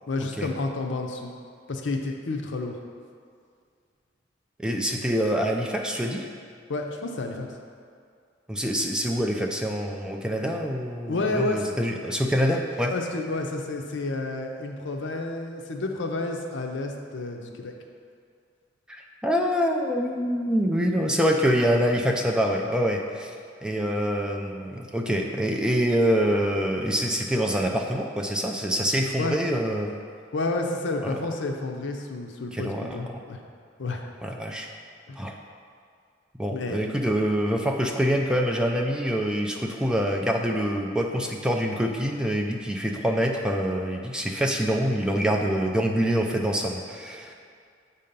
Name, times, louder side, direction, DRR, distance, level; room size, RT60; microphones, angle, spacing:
voice 1, 0.1-1.3 1.7-2.8 6.7-7.5 11.1-11.7 12.9-17.7 29.2-29.4 30.3-33.4 33.8-34.0 35.1-35.3 36.5-36.9, left 2 dB, 75° left, 3 dB, 0.6 m, -30 dB
voice 2, 4.6-6.3 8.5-12.9 18.9-23.4 23.6-29.9 31.0-31.2 32.5-33.2 34.2-34.7 35.2-35.4 36.4-47.3, equal, 5° right, 1 dB, 0.3 m, -25 dB
7.5 x 2.8 x 5.2 m, 2.2 s
head